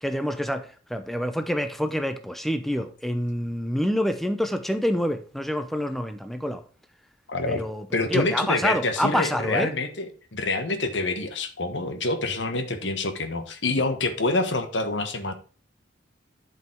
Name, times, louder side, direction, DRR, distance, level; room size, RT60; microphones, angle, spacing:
voice 1, 0.0-6.6 7.5-9.7, equal, ahead, 0.7 m, -27 dB
voice 2, 7.3-7.6 7.9-15.3, left 2 dB, 70° left, 1.4 m, -27 dB
11.0 x 5.5 x 4.6 m
head